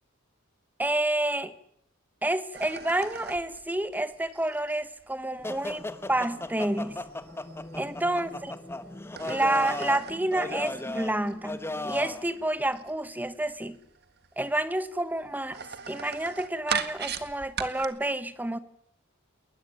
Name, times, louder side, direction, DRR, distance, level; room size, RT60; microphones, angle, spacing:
voice 1, 0.8-1.5 2.2-7.0 7.7-8.5 9.2-13.8 14.4-15.6 15.9-18.6, right 1 dB, 10° right, 1.2 m, -29 dB
sound 1, 2.5-8.6 8.9-17.8, right 7 dB, 50° right, 1.8 m, -41 dB
sound 2, 5.4-12.2, left 2 dB, 10° left, 1.1 m, -36 dB
21.0 x 20.0 x 9.2 m
head